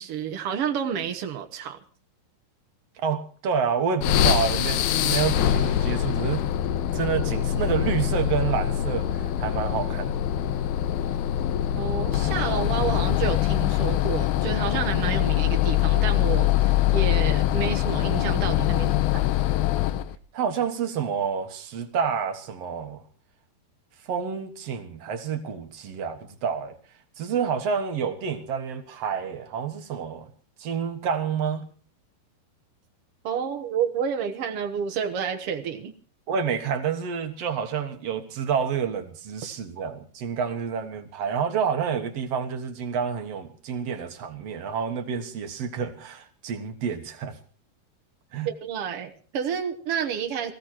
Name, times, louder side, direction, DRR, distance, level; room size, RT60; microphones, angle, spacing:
voice 1, 0.0-1.8 11.8-19.3 33.2-35.9 48.4-50.5, right 7 dB, 80° right, 1.3 m, -30 dB
voice 2, 3.0-6.4 6.9-10.3 20.3-23.0 24.1-26.7 27.2-30.3 30.6-31.7 36.3-47.4 48.3-48.5, right 7 dB, 60° right, 1.7 m, -28 dB
sound 1, 4.0-20.2, left 12 dB, 75° left, 2.7 m, -24 dB
19.0 x 15.5 x 4.4 m
omnidirectional pair, 4.7 m